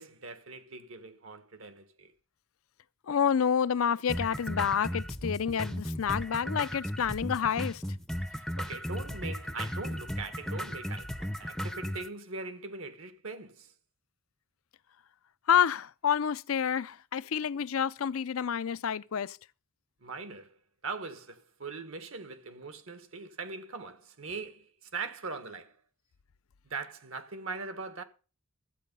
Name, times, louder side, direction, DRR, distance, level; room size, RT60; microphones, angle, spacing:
voice 1, 0.0-2.1 8.3-13.7 20.0-20.5 20.8-25.8 26.6-28.0, right 4 dB, 70° right, 1.5 m, -41 dB
voice 2, 3.1-7.8 15.5-19.4, left 7 dB, 75° left, 0.5 m, -28 dB
sound 1, 4.1-12.1, equal, ahead, 0.6 m, -36 dB
13.5 x 8.3 x 5.4 m
head